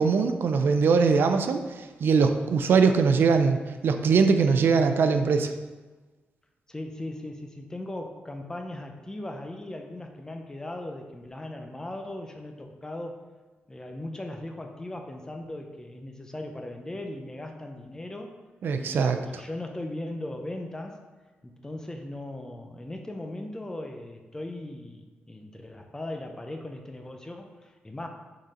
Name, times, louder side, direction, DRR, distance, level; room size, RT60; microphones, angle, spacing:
voice 1, 0.0-5.5 18.6-19.2, right 5 dB, 70° right, 7 dB, 0.5 m, -22 dB
voice 2, 6.7-13.2 13.7-18.4 18.8-21.0 21.4-28.1, left 1 dB, 15° left, 4 dB, 0.8 m, -38 dB
6.5 x 4.1 x 5.0 m, 1.3 s
cardioid pair, 100°, 4 cm